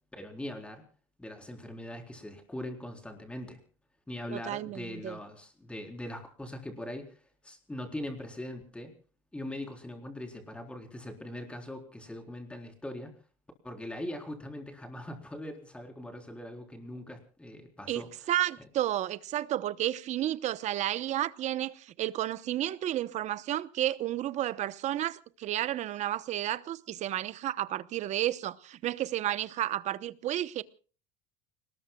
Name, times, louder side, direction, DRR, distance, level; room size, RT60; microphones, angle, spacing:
voice 1, 0.1-0.8 1.2-3.6 4.1-8.9 9.3-13.1 13.6-18.3, left 1 dB, 5° left, 4.1 m, -41 dB
voice 2, 4.3-5.2 17.9-30.6, right 13 dB, 40° right, 1.0 m, -32 dB
30.0 x 20.0 x 2.3 m
cardioid pair, 140°, 17 cm